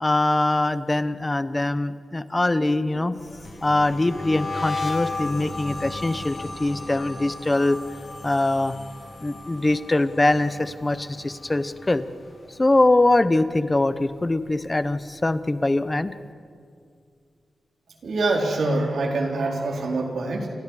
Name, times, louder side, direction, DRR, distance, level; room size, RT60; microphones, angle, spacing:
voice 1, 0.0-3.2 3.6-7.8 8.2-8.7 9.2-12.0 12.6-16.1, left 2 dB, 15° left, 13 dB, 0.8 m, -22 dB
sound 1, 3.1-12.3 12.6-13.0 13.4-14.9, left 3 dB, 40° left, 4.3 m, -35 dB
voice 2, 18.0-20.5, right 2 dB, 80° right, 0 dB, 4.1 m, -25 dB
29.0 x 28.5 x 4.9 m, 2.2 s
wide cardioid pair, 170°, 0 cm